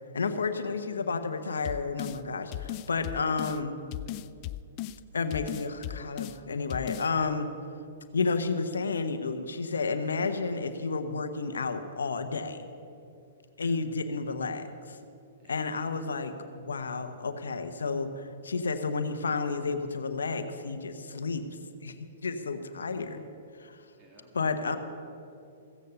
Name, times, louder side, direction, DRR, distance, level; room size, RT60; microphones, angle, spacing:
voice 1, 0.1-3.8 5.1-7.5 8.1-12.7 13.6-15.0 15.5-21.4 21.8-23.3 23.6-23.8 24.3-24.8, left 4 dB, 90° left, 9 dB, 0.9 m, -31 dB
sound 1, 1.6-2.2 2.5-3.6 3.9-5.0 5.3-6.4 6.7-7.1, left 15 dB, 40° left, 0.3 m, -36 dB
voice 2, 24.0-24.3 24.6-24.8, right 1 dB, 25° right, -1 dB, 2.9 m, -52 dB
15.5 x 8.4 x 6.8 m, 2.6 s
hypercardioid pair, 130°, 0 cm